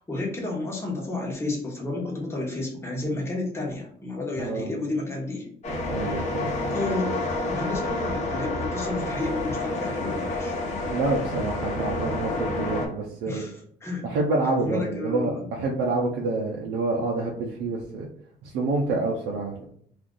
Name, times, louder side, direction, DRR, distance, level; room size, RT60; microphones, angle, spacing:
voice 1, 0.0-5.5 6.7-7.2 7.5-10.6 13.2-14.0 14.6-15.4, left 2 dB, 15° left, -2 dB, 1.1 m, -31 dB
voice 2, 4.4-4.7 5.9-6.5 10.9-13.4 14.0-18.1 18.4-19.6, right 3 dB, 85° right, -2 dB, 0.6 m, -27 dB
sound 1, 5.6-12.9, left 2 dB, 45° left, 1.0 m, -29 dB
2.5 x 2.5 x 3.6 m, 0.64 s
cardioid pair, 110°, 17 cm